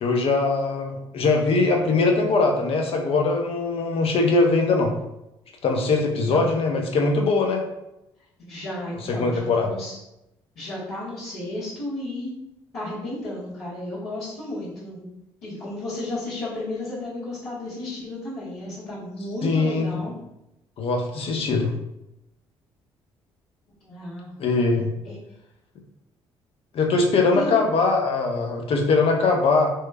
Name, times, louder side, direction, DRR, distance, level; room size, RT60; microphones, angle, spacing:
voice 1, 0.0-4.9 5.6-7.6 9.2-9.7 19.4-19.9 20.8-21.7 24.4-24.9 26.7-29.7, left 3 dB, 55° left, 2 dB, 0.5 m, -21 dB
voice 2, 6.1-6.5 8.4-10.0 10.5-12.3 12.7-15.1 15.4-20.1 23.8-24.3 25.0-25.2 27.3-27.6, left 1 dB, 80° left, -15 dB, 1.2 m, -33 dB
2.9 x 2.2 x 2.2 m, 0.87 s
hypercardioid pair, 55°, 11 cm